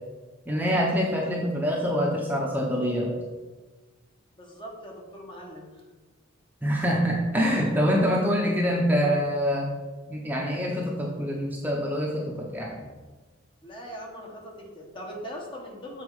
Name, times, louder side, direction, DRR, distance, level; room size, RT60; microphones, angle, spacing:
voice 1, 0.5-3.1 6.6-9.7 10.1-12.8, equal, 10° right, -3 dB, 0.8 m, -25 dB
voice 2, 4.4-5.8 6.9-7.0 13.6-16.0, equal, 25° left, -1 dB, 1.2 m, -41 dB
7.3 x 4.2 x 4.8 m, 1.3 s
head